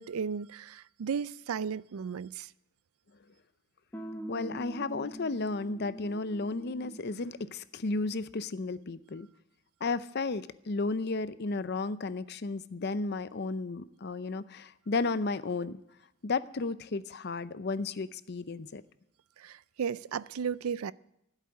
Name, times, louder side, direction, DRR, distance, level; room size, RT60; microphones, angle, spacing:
voice 1, 0.0-2.5 19.4-20.9, right 6 dB, 90° right, 0.4 m, -35 dB
sound 1, 3.9-7.1, equal, 10° left, 1.4 m, -43 dB
voice 2, 4.3-9.3 9.8-15.8 16.2-18.8, left 3 dB, 50° left, 0.6 m, -33 dB
15.0 x 8.2 x 9.5 m
head